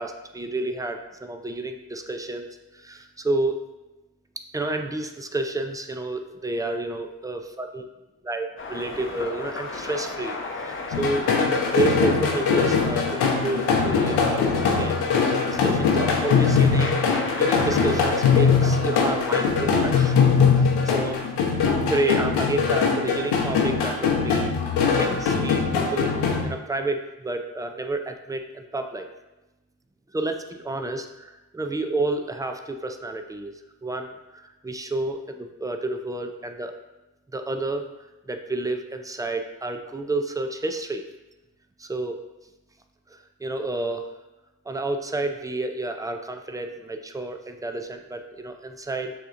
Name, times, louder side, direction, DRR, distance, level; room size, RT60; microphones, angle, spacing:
voice 1, 0.0-2.5 2.7-3.6 4.4-7.9 8.2-20.1 20.6-21.2 21.9-24.5 25.0-29.1 30.1-36.7 37.3-37.8 38.3-41.0 41.8-42.2 43.1-44.1 44.7-49.1, right 2 dB, 10° right, 5 dB, 0.4 m, -30 dB
sound 1, 8.6-19.4, left 3 dB, 30° left, 0.7 m, -34 dB
sound 2, 10.9-26.4, left 5 dB, 90° left, 0.8 m, -21 dB
6.7 x 2.9 x 2.5 m, 1.0 s
cardioid pair, 75°, 39 cm